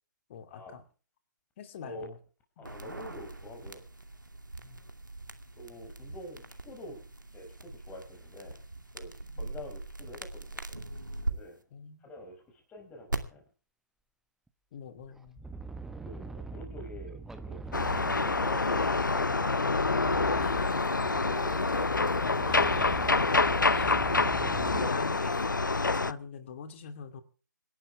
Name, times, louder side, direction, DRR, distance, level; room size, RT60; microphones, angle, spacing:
voice 1, 0.3-0.8 1.6-2.2 4.6-4.8 9.3-9.5 11.7-12.1 14.7-15.4 20.3-20.9 22.5-23.1 23.7-24.0 24.6-25.3 25.8-27.2, left 7 dB, 40° left, 8 dB, 2.7 m, -43 dB
voice 2, 1.8-2.1 2.6-3.9 5.6-7.0 7.3-8.6 8.9-10.9 11.3-11.6 12.0-13.4 16.0-19.8, left 1 dB, 15° left, 4 dB, 5.5 m, -47 dB
sound 1, 2.6-11.3 13.1-13.2, right 2 dB, 85° right, 2.4 m, -41 dB
sound 2, 14.5-14.6 15.0-24.9, right 3 dB, 5° right, 1.0 m, -43 dB
sound 3, 17.7-26.1, left 3 dB, 80° left, 0.8 m, -27 dB
27.0 x 11.5 x 3.5 m, 0.38 s
figure-of-eight pair, 135°, 10 cm